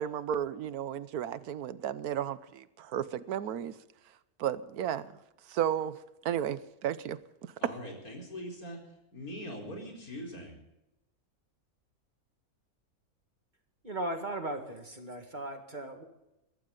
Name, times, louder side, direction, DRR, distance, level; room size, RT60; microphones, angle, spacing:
voice 1, 0.0-3.7 4.4-5.1 5.5-6.0 6.2-7.5, right 10 dB, 80° right, 15 dB, 1.3 m, -33 dB
voice 2, 7.6-8.8 9.1-10.6, equal, 80° left, 0 dB, 4.8 m, -42 dB
voice 3, 13.8-16.0, right 1 dB, 30° right, 5 dB, 2.0 m, -37 dB
22.5 x 13.5 x 3.9 m, 0.90 s
omnidirectional pair, 1.5 m